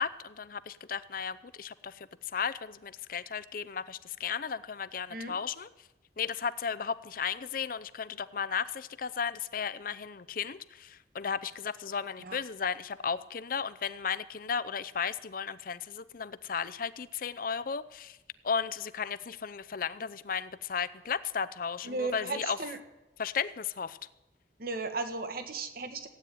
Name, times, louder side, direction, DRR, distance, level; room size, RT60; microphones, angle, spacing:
voice 1, 0.0-5.7 6.2-18.2 18.4-22.6 23.2-24.0, left 6 dB, 50° left, 15 dB, 0.6 m, -35 dB
voice 2, 21.8-22.8 24.6-26.1, right 3 dB, 55° right, 7 dB, 1.6 m, -35 dB
15.5 x 9.2 x 9.3 m, 0.98 s
head